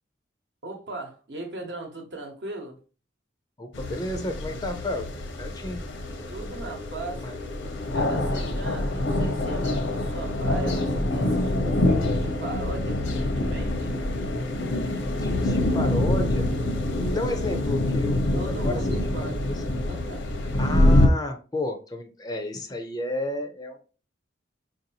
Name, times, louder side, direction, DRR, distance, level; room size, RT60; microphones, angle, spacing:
voice 1, 0.6-2.8 6.3-7.3 7.9-13.9 18.3-19.4 19.9-20.4, right 2 dB, 60° right, 0.9 m, -38 dB
voice 2, 3.6-5.1 5.4-5.8 7.2-7.4 15.2-16.4 16.8-18.2 18.5-19.0 19.4-19.6 20.6-23.8, left 1 dB, 20° left, 0.4 m, -32 dB
sound 1, 3.7-21.1, left 1 dB, 80° left, 0.7 m, -25 dB
4.5 x 2.6 x 2.8 m
head